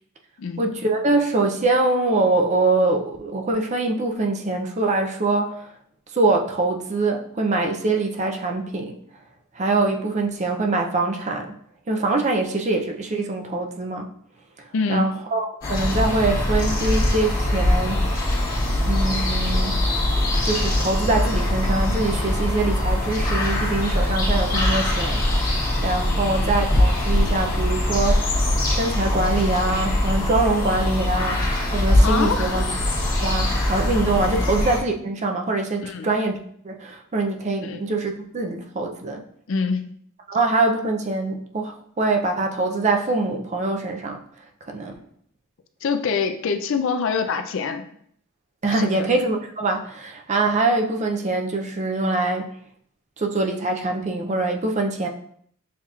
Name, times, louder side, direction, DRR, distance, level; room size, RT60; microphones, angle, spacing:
voice 1, 0.6-5.7 6.1-9.0 9.5-11.5 11.9-14.1 14.6-18.1 18.9-19.8 20.4-28.3 28.7-32.6 33.2-36.4 36.6-39.2 40.3-44.2 44.7-45.0 48.6-52.5 53.2-55.1, right 2 dB, 30° right, 3 dB, 0.4 m, -24 dB
voice 2, 14.7-15.1 26.2-26.3 32.0-32.7 34.3-34.4 35.8-36.1 37.6-37.8 39.5-39.9 45.8-47.8 48.7-49.1, left 5 dB, 60° left, 7 dB, 0.4 m, -25 dB
sound 1, 15.6-34.8, left 1 dB, 35° left, 1.3 m, -22 dB
7.0 x 2.9 x 2.4 m, 0.64 s
head